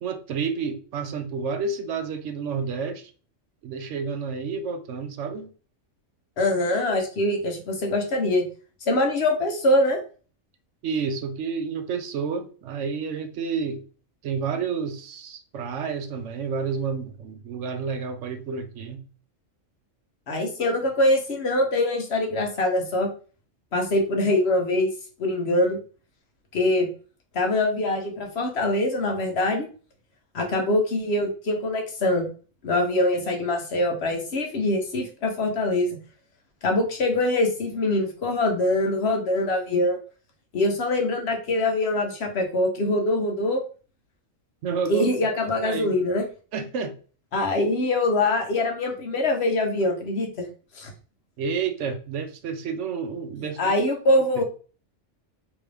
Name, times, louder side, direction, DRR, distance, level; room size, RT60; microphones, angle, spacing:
voice 1, 0.0-3.1 3.6-5.5 10.8-13.8 14.2-19.0 44.6-45.1 45.6-46.0 46.5-46.9 51.4-53.7, right 5 dB, 70° right, 0.9 m, -30 dB
voice 2, 6.4-8.4 8.9-10.0 20.3-23.1 23.7-24.9 25.2-25.8 26.5-26.9 27.3-29.7 30.3-32.3 32.6-36.0 36.6-40.0 40.5-43.6 44.9-46.2 47.3-50.5 50.7-50.9 53.6-54.4, left 1 dB, 55° left, 1.0 m, -23 dB
3.5 x 3.0 x 3.3 m
omnidirectional pair, 1.3 m